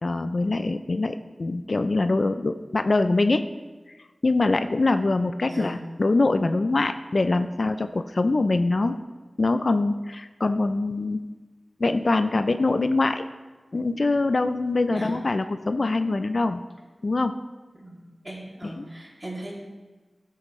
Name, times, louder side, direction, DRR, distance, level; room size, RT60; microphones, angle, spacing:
voice 1, 0.0-3.5 4.2-9.0 9.4-11.2 11.8-13.2 13.7-16.6 17.0-17.4 18.8-18.9, left 2 dB, 60° left, 9 dB, 0.4 m, -23 dB
voice 2, 18.2-19.5, right 1 dB, 30° right, -4 dB, 2.7 m, -37 dB
12.5 x 7.7 x 3.1 m, 1.3 s
wide cardioid pair, 70°, 0 cm